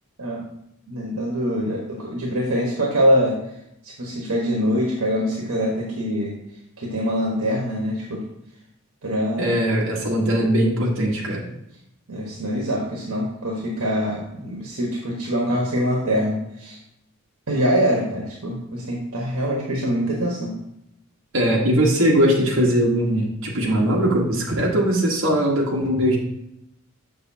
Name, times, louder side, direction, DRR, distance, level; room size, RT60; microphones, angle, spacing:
voice 1, 0.9-3.4 3.8-6.3 6.8-8.2 9.0-9.5 12.1-16.8 17.5-20.5, equal, 85° right, -2 dB, 1.2 m, -24 dB
voice 2, 9.4-11.4 21.3-26.2, equal, 65° right, -3 dB, 1.3 m, -20 dB
6.7 x 6.4 x 2.8 m, 0.80 s
head